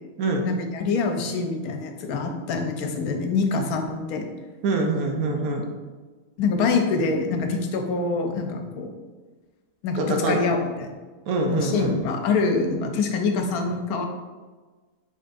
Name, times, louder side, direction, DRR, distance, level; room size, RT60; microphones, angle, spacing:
voice 1, 0.4-4.2 6.4-8.9 9.8-10.9 11.5-14.1, left 4 dB, 75° left, 4 dB, 1.0 m, -25 dB
voice 2, 4.6-5.6 10.0-10.4 11.3-11.9, right 2 dB, 75° right, 3 dB, 1.1 m, -24 dB
5.2 x 3.9 x 2.6 m, 1.3 s
omnidirectional pair, 1.7 m